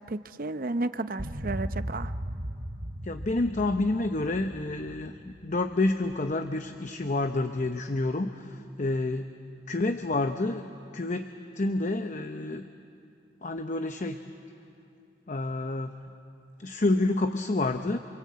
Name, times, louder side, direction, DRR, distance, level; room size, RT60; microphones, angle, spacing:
voice 1, 0.0-2.1, right 2 dB, 50° right, 11 dB, 0.7 m, -32 dB
sound 1, 1.2-6.5, equal, 75° right, 2.2 m, -38 dB
voice 2, 3.0-9.3 9.7-10.6 10.9-11.3 11.6-12.6 13.4-14.2 15.3-15.9 16.6-18.0, left 2 dB, 40° left, 7 dB, 0.8 m, -28 dB
27.0 x 26.0 x 8.5 m, 2.7 s
head